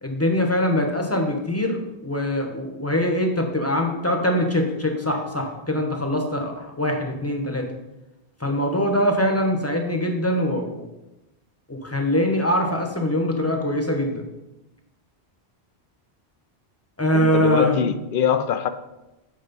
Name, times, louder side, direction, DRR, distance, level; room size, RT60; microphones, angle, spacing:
voice 1, 0.0-7.7 8.4-10.9 11.7-14.3 17.0-17.8, left 1 dB, 15° left, 1.1 m, -23 dB
voice 2, 17.1-18.7, left 8 dB, 60° left, 0.7 m, -23 dB
8.3 x 4.8 x 5.4 m
omnidirectional pair, 1.1 m